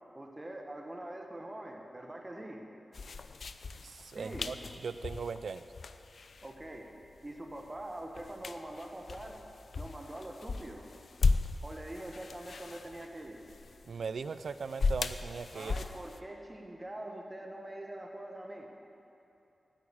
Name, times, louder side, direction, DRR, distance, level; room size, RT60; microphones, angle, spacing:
voice 1, 0.1-2.6 4.1-4.5 6.4-6.9 7.2-9.4 9.8-10.9 11.6-13.4 15.5-18.7, right 1 dB, 20° right, 1 dB, 1.4 m, -44 dB
sound 1, 2.9-16.2, left 4 dB, 65° left, 0.5 m, -37 dB
voice 2, 3.8-4.6 4.8-5.6 13.9-15.7, right 5 dB, 75° right, 13 dB, 0.4 m, -39 dB
9.6 x 9.2 x 8.7 m, 2.8 s
wide cardioid pair, 90°, 0 cm